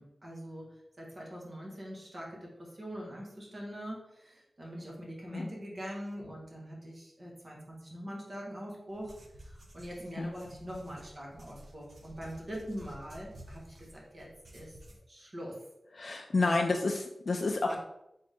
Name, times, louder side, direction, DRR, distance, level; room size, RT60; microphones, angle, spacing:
voice 1, 0.0-9.2 9.4-14.3 14.5-14.8 15.1-15.6 16.3-16.6 17.6-17.8, equal, 45° right, -3 dB, 1.5 m, -43 dB
sound 1, 8.9-15.0, right 1 dB, 60° right, 0.8 m, -53 dB
voice 2, 16.0-17.7, left 3 dB, 60° left, 2 dB, 0.3 m, -29 dB
3.7 x 3.7 x 3.6 m, 0.86 s
wide cardioid pair, 100°, 0 cm